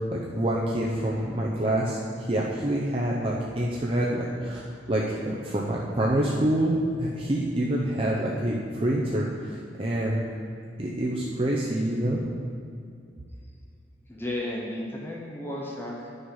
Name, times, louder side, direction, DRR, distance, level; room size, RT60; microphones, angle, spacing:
voice 1, 0.3-10.2 10.8-12.2, right 1 dB, 30° right, -4 dB, 0.7 m, -27 dB
voice 2, 14.1-16.1, left 1 dB, 10° left, -2 dB, 0.9 m, -33 dB
10.0 x 6.5 x 4.8 m, 2.3 s
head